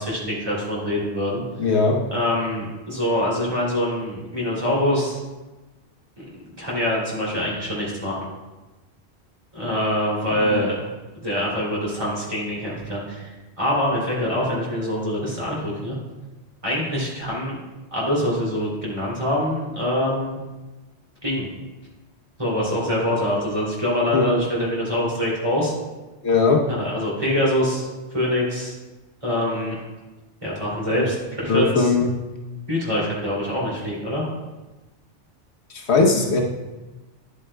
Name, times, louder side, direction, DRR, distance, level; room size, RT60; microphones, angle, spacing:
voice 1, 0.0-1.4 2.1-5.2 6.2-6.3 6.6-8.3 9.5-10.7 11.2-16.0 16.6-17.6 17.9-20.4 21.2-21.5 22.4-25.7 26.7-28.7 29.2-29.8 30.4-31.9 32.7-34.2, left 1 dB, 30° right, -6 dB, 2.8 m, -24 dB
voice 2, 1.6-2.0 10.4-10.6 24.1-24.3 26.2-26.6 30.9-31.1 31.5-32.1 35.7-36.4, left 4 dB, 70° left, 0 dB, 1.2 m, -19 dB
10.5 x 8.3 x 2.2 m, 1.1 s
omnidirectional pair, 1.2 m